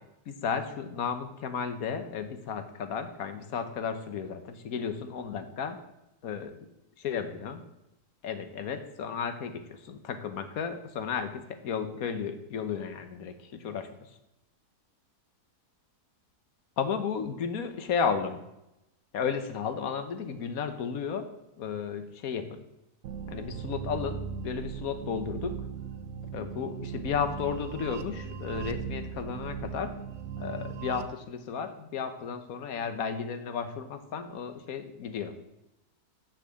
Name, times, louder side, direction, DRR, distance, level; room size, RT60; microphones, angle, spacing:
voice 1, 0.3-5.8 6.2-6.7 7.0-7.6 8.2-14.1 16.8-18.4 19.1-21.3 21.6-22.6 23.3-25.6 26.3-29.9 30.4-35.3, left 6 dB, 65° left, 9 dB, 1.3 m, -33 dB
sound 1, 23.0-31.0, right 7 dB, 65° right, 1.1 m, -38 dB
6.6 x 5.9 x 7.5 m, 0.89 s
omnidirectional pair, 1.7 m